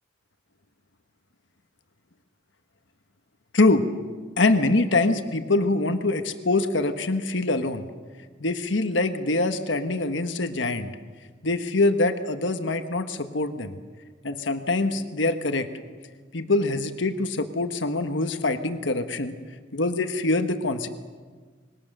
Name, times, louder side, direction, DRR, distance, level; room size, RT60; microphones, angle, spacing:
voice 1, 3.5-3.9 4.4-7.8 8.4-10.9 11.4-13.7 14.2-15.7 16.3-19.3 19.7-20.9, left 2 dB, 75° left, 8 dB, 1.3 m, -24 dB
25.5 x 21.5 x 6.7 m, 1.5 s
head